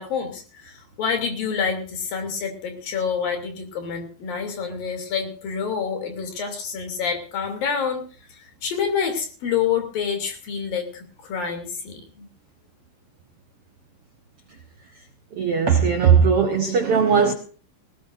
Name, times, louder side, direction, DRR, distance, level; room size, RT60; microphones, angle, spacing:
voice 1, 0.0-8.0 8.3-10.9 11.2-12.3, left 6 dB, 60° left, 4.5 m, -27 dB
voice 2, 15.3-17.3, right 6 dB, 75° right, 1.3 m, -18 dB
19.0 x 18.5 x 2.6 m
omnidirectional pair, 4.6 m